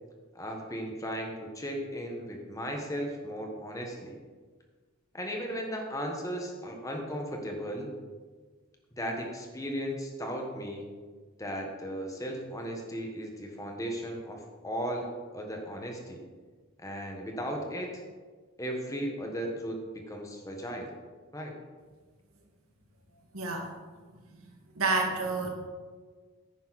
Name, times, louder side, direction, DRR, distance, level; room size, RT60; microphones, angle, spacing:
voice 1, 0.3-4.2 5.1-7.9 8.9-10.9 11.4-15.1 15.3-16.2 16.8-18.0 18.6-20.9 21.3-21.5, equal, 15° left, 1 dB, 1.5 m, -36 dB
voice 2, 23.3-23.7 24.8-25.5, right 3 dB, 80° right, 1 dB, 2.0 m, -28 dB
10.5 x 9.6 x 4.2 m, 1.4 s
head